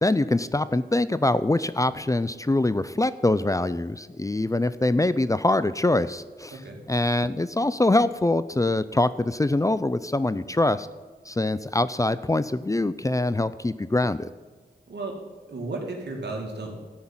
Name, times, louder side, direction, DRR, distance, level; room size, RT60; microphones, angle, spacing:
voice 1, 0.0-6.5 6.9-10.9 11.3-14.3, left 2 dB, 20° left, 15 dB, 0.5 m, -24 dB
voice 2, 14.9-15.2 15.5-16.8, right 2 dB, 80° right, 0 dB, 2.5 m, -34 dB
13.5 x 5.8 x 8.8 m, 1.3 s
cardioid pair, 55°, 17 cm